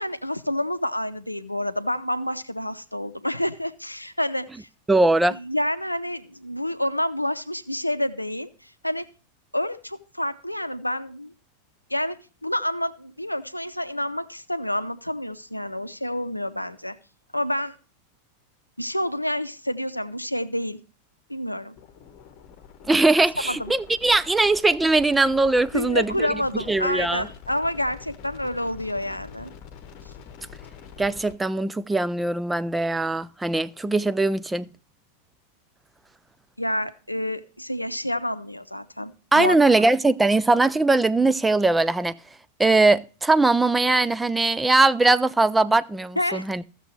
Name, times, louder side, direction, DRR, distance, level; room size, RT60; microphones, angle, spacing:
voice 1, 0.0-4.7 5.3-9.1 9.5-11.3 11.9-17.0 17.3-17.7 18.8-20.8 21.3-21.7 23.5-23.7 25.7-29.5 36.6-39.6 46.2-46.4, left 1 dB, 85° left, 0.6 m, -28 dB
voice 2, 4.9-5.4 22.9-26.4 26.7-27.3 31.0-34.7 39.3-42.2 42.6-46.6, right 2 dB, 10° right, 0.3 m, -20 dB
sound 1, 21.8-31.3, left 7 dB, 40° left, 1.1 m, -45 dB
15.0 x 6.8 x 3.2 m
figure-of-eight pair, 90°, 0 cm